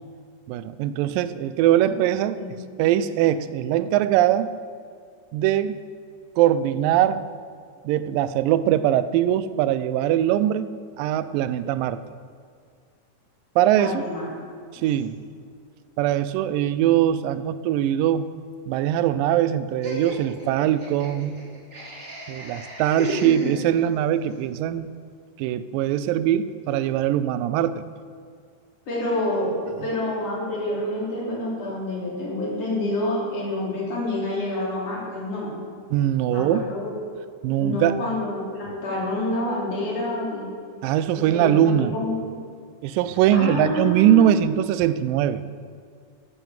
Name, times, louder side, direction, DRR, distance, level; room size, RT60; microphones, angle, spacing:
voice 1, 0.5-2.4 2.8-4.5 5.3-5.8 6.4-7.3 7.9-10.7 11.0-12.0 13.6-14.0 14.8-15.2 16.0-18.3 18.7-21.4 22.3-24.9 25.4-27.8 35.9-36.6 37.4-38.0 40.8-42.0 42.8-45.4, right 11 dB, 90° right, 13 dB, 2.2 m, -21 dB
voice 2, 2.3-2.7 13.8-14.3 14.8-14.9 28.9-29.6 29.8-35.6 36.3-37.0 37.6-40.5 41.1-42.1 43.3-44.5, left 1 dB, 50° left, -6 dB, 4.1 m, -28 dB
Laughter, 19.8-24.1, right 1 dB, 25° right, 2.5 m, -33 dB
11.0 x 7.9 x 7.3 m, 2.3 s
omnidirectional pair, 3.9 m